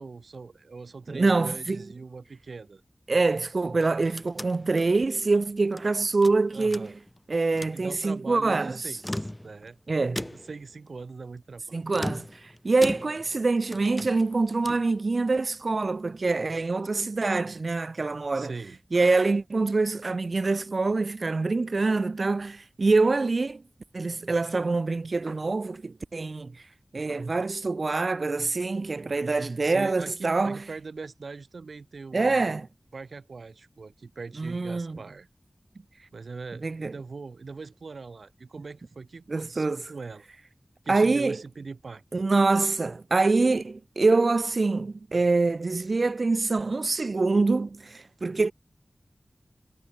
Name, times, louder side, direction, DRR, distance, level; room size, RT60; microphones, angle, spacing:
voice 1, 0.0-2.8 6.5-7.0 7.7-11.8 18.3-18.8 29.6-32.6 32.9-35.3 36.1-40.3 40.8-42.0, right 4 dB, 90° right, 6.4 m, -41 dB
voice 2, 1.1-1.8 3.1-6.9 7.3-8.8 9.9-10.3 11.7-12.3 12.6-18.5 18.9-23.6 23.9-26.5 26.9-30.6 32.1-32.7 34.4-35.0 36.6-36.9 39.3-39.8 40.9-41.4 42.1-48.5, right 3 dB, 70° right, 2.4 m, -25 dB
sound 1, 3.7-5.9 6.2-7.2 7.5-7.8 8.9-9.7 10.1-10.7 11.9-13.4 13.7-14.9, left 1 dB, 20° left, 2.1 m, -37 dB
wide cardioid pair, 50°, 0 cm